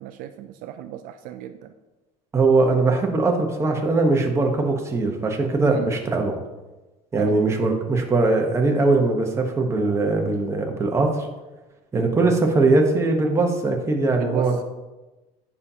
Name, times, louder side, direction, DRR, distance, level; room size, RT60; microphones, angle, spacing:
voice 1, 0.0-1.7 5.7-5.9 7.2-7.4 11.9-12.1 14.1-14.5, right 12 dB, 65° right, 8 dB, 0.4 m, -35 dB
voice 2, 2.3-6.4 7.1-11.1 11.9-14.6, right 3 dB, 15° right, 2 dB, 1.0 m, -21 dB
9.6 x 5.5 x 2.8 m, 1.1 s
cardioid pair, 140°, 16 cm